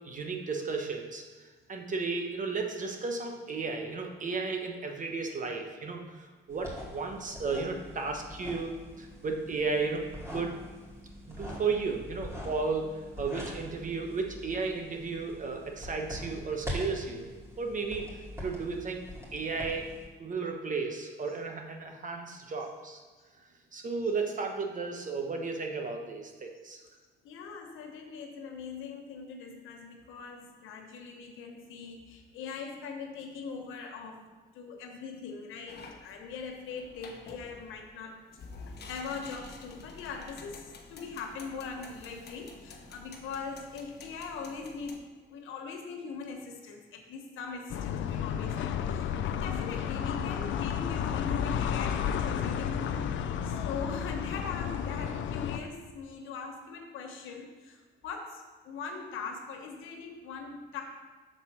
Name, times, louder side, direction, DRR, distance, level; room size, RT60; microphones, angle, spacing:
voice 1, 0.0-10.0 10.3-10.6 11.3-12.9 13.2-17.3 17.6-18.1 18.4-19.0 19.3-19.9 20.2-23.0 23.7-26.8, right 4 dB, 40° right, 3 dB, 1.1 m, -34 dB
sound 1, 6.5-20.1, equal, 15° right, 2.5 m, -43 dB
voice 2, 27.2-34.3 34.5-38.2 38.7-45.0 45.3-60.8, left 5 dB, 90° left, 3 dB, 1.1 m, -41 dB
sound 2, 35.7-45.0, left 3 dB, 55° left, 1.0 m, -49 dB
sound 3, 47.7-55.6, left 8 dB, 75° left, 0.5 m, -32 dB
6.7 x 4.1 x 6.0 m, 1.4 s
cardioid pair, 90°, 20 cm